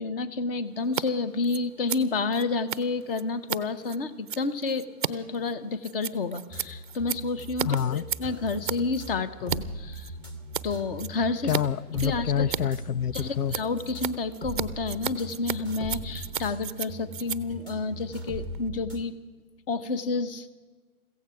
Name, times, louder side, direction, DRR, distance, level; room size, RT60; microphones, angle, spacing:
voice 1, 0.0-10.1 10.6-11.5 12.0-12.5 13.1-19.1 19.7-20.5, left 3 dB, 40° left, 13 dB, 1.0 m, -30 dB
Scissors, 0.8-1.0 1.3-9.6 9.9-10.7 11.0-11.6 11.9-18.7, right 8 dB, 35° right, 0.4 m, -35 dB
sound 1, 6.5-19.0, right 1 dB, 10° left, 0.8 m, -40 dB
voice 2, 7.6-8.0 11.5-13.5, left 8 dB, 80° left, 17 dB, 0.5 m, -27 dB
15.5 x 15.5 x 5.8 m, 1.4 s
figure-of-eight pair, 135°, 45 cm